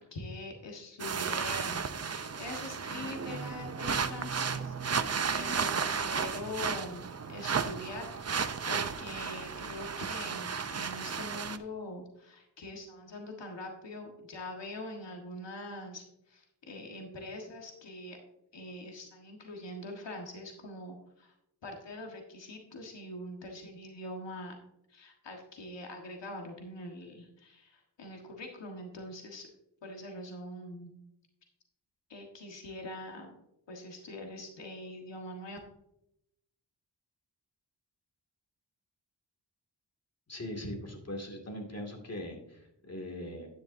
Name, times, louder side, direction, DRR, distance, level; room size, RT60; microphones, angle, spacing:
voice 1, 0.1-18.2 18.5-21.3 21.6-24.5 24.9-29.5 29.8-30.9 32.1-33.3 33.7-35.6, left 1 dB, 75° left, 1 dB, 1.6 m, -43 dB
sound 1, 1.0-11.6, right 6 dB, 35° right, 0.7 m, -34 dB
voice 2, 40.3-43.5, left 1 dB, 35° left, 3 dB, 2.4 m, -40 dB
10.5 x 10.0 x 2.7 m, 0.82 s
wide cardioid pair, 75°, 43 cm